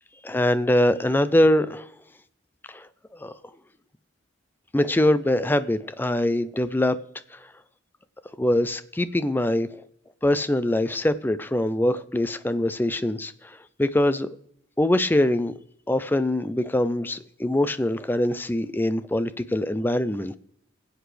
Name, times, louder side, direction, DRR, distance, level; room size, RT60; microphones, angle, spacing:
voice 1, 0.2-1.9 2.7-2.9 3.2-3.3 4.7-7.0 7.3-7.5 8.4-9.7 10.2-14.4 14.8-15.5 15.9-20.4, left 1 dB, 10° left, 0.4 m, -23 dB
21.5 x 8.1 x 3.3 m
head